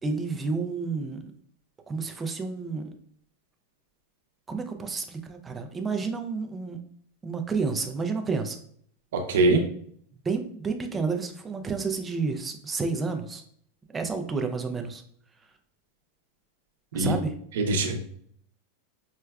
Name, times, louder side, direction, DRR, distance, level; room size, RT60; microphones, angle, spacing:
voice 1, 0.0-1.3 1.9-2.9 4.5-6.8 7.2-8.6 10.1-13.4 13.9-15.0 16.9-17.4, right 4 dB, 15° right, 5 dB, 0.3 m, -30 dB
voice 2, 9.1-9.6 16.9-17.1 17.7-18.2, right 2 dB, 85° right, 5 dB, 0.6 m, -23 dB
4.5 x 2.1 x 2.3 m, 0.63 s
supercardioid pair, 155°, 0 cm